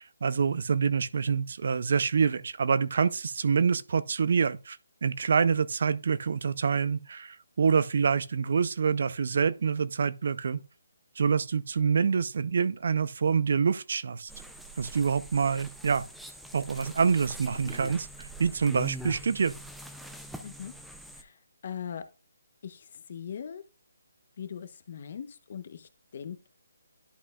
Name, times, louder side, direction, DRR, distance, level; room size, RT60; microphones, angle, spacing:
voice 1, 0.0-10.6 11.2-14.3 14.8-16.0 16.5-19.5, right 6 dB, 55° right, 0.5 m, -26 dB
sound 1, 14.3-21.2, equal, ahead, 0.5 m, -43 dB
voice 2, 21.6-22.0 22.6-22.8 23.1-23.6 24.4-26.5, left 8 dB, 45° left, 0.9 m, -40 dB
11.0 x 5.4 x 2.3 m
hypercardioid pair, 165°, 0 cm